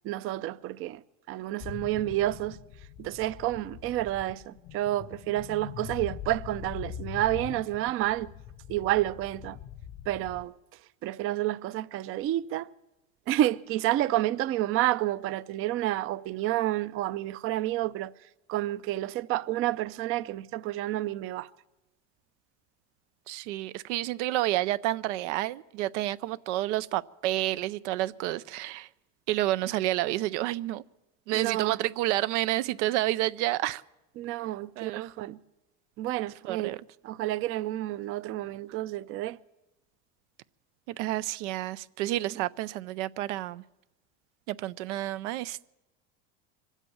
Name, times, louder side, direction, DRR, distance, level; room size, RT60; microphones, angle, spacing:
voice 1, 0.0-2.6 3.0-8.3 8.7-9.6 10.1-10.5 11.0-12.7 13.3-21.5 31.3-31.8 34.2-35.4 36.0-36.8 37.0-39.4 42.3-42.4, right 15 dB, 40° right, 0.5 m, -30 dB
sound 1, 1.6-10.5, left 10 dB, 45° left, 0.6 m, -43 dB
voice 2, 23.3-28.9 29.3-30.8 31.3-33.8 34.8-35.1 36.4-36.8 40.9-43.6 44.5-45.7, right 15 dB, 85° right, 0.6 m, -30 dB
24.0 x 8.2 x 7.1 m
supercardioid pair, 130°, 34 cm